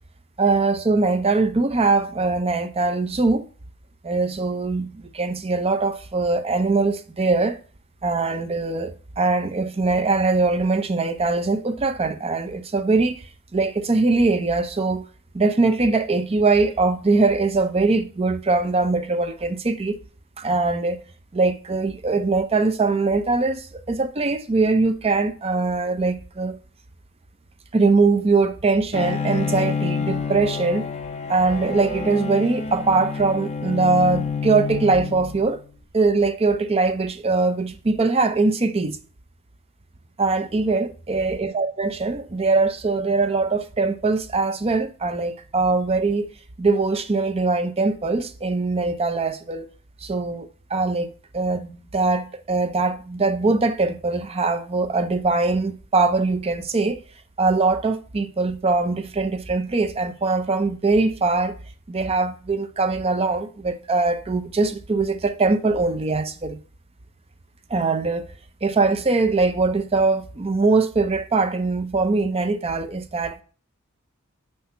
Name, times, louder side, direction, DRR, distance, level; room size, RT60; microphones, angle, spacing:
voice 1, 0.4-3.4 4.0-7.6 8.0-13.2 13.5-15.1 15.3-20.0 20.4-21.0 21.3-26.6 27.7-30.9 31.3-35.6 35.9-39.0 40.2-46.3 46.6-49.7 50.0-57.0 57.4-61.6 61.9-66.6 67.7-68.2 68.6-73.4, right 3 dB, 30° right, 0.5 m, -22 dB
Bowed string instrument, 28.9-35.6, left 5 dB, 30° left, 0.5 m, -28 dB
5.9 x 3.2 x 5.6 m
head